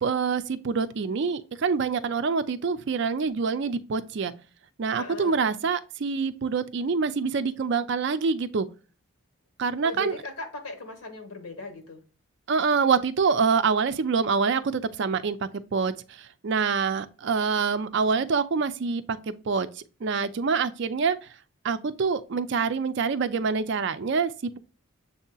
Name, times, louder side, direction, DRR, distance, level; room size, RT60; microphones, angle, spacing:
voice 1, 0.0-4.3 4.8-8.7 9.6-10.2 12.5-21.3 21.6-24.6, right 5 dB, 55° right, 0.4 m, -26 dB
voice 2, 5.0-5.4 9.8-12.0, left 3 dB, 90° left, 1.3 m, -38 dB
7.2 x 2.8 x 2.3 m
head